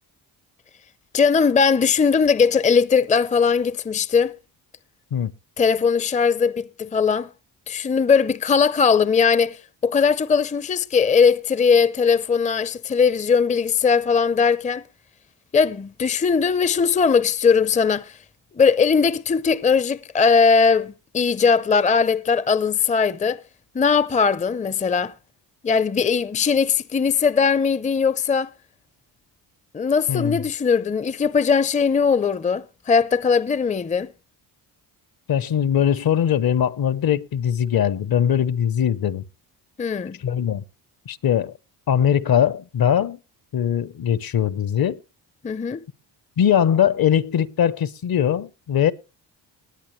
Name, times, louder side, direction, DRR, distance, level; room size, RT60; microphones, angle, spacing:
voice 1, 1.1-4.3 5.6-7.3 7.7-14.8 15.5-18.1 18.6-23.4 23.7-25.1 25.6-28.5 29.7-34.1 39.8-40.2 45.4-45.8, left 5 dB, 15° left, 0.6 m, -19 dB
voice 2, 30.1-30.4 35.3-39.2 40.2-40.6 41.1-41.5 41.9-43.2 43.5-45.0 46.4-48.9, left 9 dB, 50° left, 0.9 m, -21 dB
20.0 x 8.4 x 3.1 m
supercardioid pair, 65°, 46 cm